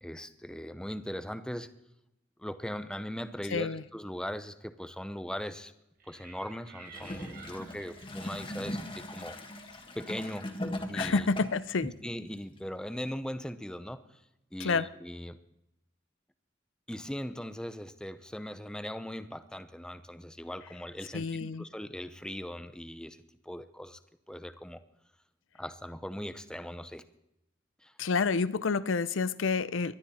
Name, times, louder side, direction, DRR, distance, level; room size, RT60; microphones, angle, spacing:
voice 1, 0.0-1.7 2.4-5.7 6.1-9.4 9.9-10.5 10.9-11.3 11.8-14.2 14.5-15.4 16.9-24.0 24.3-24.8 25.6-27.0 27.8-27.9, equal, 5° left, 0.6 m, -39 dB
voice 2, 3.5-3.8 10.9-11.9 14.6-14.9 21.1-21.7 28.0-29.9, left 4 dB, 90° left, 0.6 m, -29 dB
sound 1, 6.0-10.8, right 5 dB, 45° right, 2.4 m, -54 dB
Gurgling / Toilet flush, 6.9-11.7 12.6-12.7, left 1 dB, 25° left, 1.6 m, -39 dB
20.0 x 12.0 x 4.3 m
head